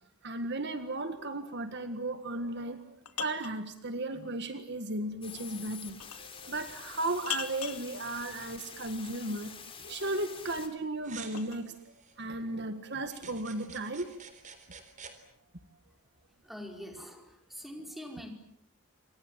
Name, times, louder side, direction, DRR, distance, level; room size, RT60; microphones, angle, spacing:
voice 1, 0.2-11.8 12.2-14.1, right 2 dB, 50° right, 9 dB, 1.8 m, -35 dB
sound 1, 2.6-3.6 6.0-6.3 7.3-7.9 10.1-11.7, left 10 dB, 80° left, 2.6 m, -40 dB
sound 2, 5.2-10.7, left 7 dB, 25° left, 3.2 m, -47 dB
sound 3, 11.0-12.2 13.1-15.1, right 6 dB, 35° right, 3.7 m, -49 dB
voice 2, 16.4-18.3, equal, ahead, 3 dB, 5.0 m, -44 dB
29.0 x 26.0 x 7.5 m, 0.70 s
head